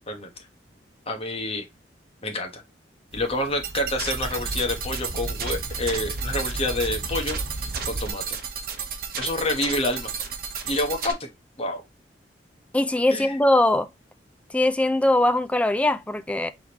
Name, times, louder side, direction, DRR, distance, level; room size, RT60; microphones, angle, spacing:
voice 1, 1.1-1.7 2.2-2.6 3.1-8.4 9.2-10.1 10.7-11.3 11.6-11.8 13.1-13.4, left 2 dB, 35° left, 1.2 m, -28 dB
sound 1, 3.1-8.1, right 1 dB, 80° right, 1.2 m, -34 dB
sound 2, 3.6-11.1, right 6 dB, 55° right, 0.9 m, -33 dB
voice 2, 12.7-13.9 14.5-16.5, left 1 dB, 5° left, 0.4 m, -21 dB
5.0 x 3.6 x 2.9 m
head